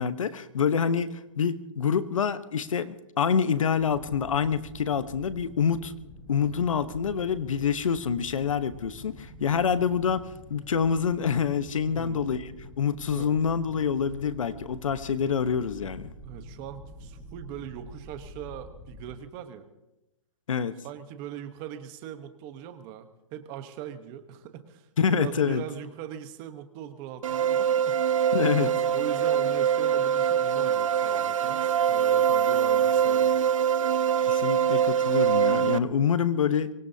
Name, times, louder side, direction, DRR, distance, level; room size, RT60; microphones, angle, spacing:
voice 1, 0.0-5.9 6.3-12.5 12.8-16.1 20.5-20.7 25.0-25.6 28.3-28.7 34.2-36.7, left 7 dB, 85° left, 12 dB, 1.1 m, -26 dB
sound 1, 3.8-19.1, equal, ahead, 1.6 m, -47 dB
voice 2, 6.4-6.7 11.9-12.2 13.1-13.3 16.2-19.6 20.6-28.2 28.5-33.4, right 10 dB, 25° right, 9 dB, 1.1 m, -41 dB
sound 2, 27.2-35.8, right 8 dB, 80° right, 0.5 m, -23 dB
24.5 x 20.0 x 2.8 m, 0.95 s
hypercardioid pair, 160°, 16 cm